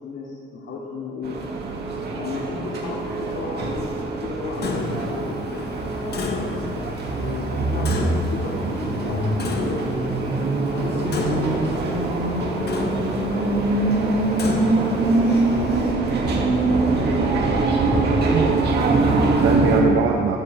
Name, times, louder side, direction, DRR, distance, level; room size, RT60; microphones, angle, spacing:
voice 1, 0.0-1.3 2.1-3.9 4.2-5.2 5.8-6.9 7.2-9.8 10.7-14.5 14.9-16.7, left 4 dB, 70° left, -5 dB, 2.5 m, -34 dB
sound 1, 1.2-19.8, right 3 dB, 55° right, 2.5 m, -23 dB
Clock, 4.6-15.9, left 4 dB, 55° left, 1.6 m, -33 dB
voice 2, 18.3-20.4, right 6 dB, 85° right, 1 dB, 1.1 m, -24 dB
14.5 x 14.0 x 3.6 m, 2.6 s
cardioid pair, 90°, 20 cm